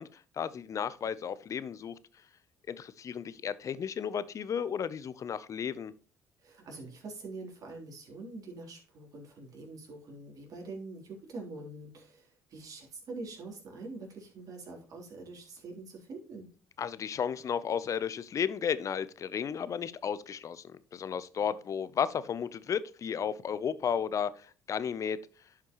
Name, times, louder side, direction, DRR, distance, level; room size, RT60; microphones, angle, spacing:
voice 1, 0.0-2.0 2.7-5.9 16.8-25.2, left 7 dB, 45° left, 0.7 m, -33 dB
voice 2, 6.4-16.5, right 3 dB, 55° right, 3.6 m, -45 dB
11.0 x 5.8 x 3.0 m
hypercardioid pair, 60°, 7 cm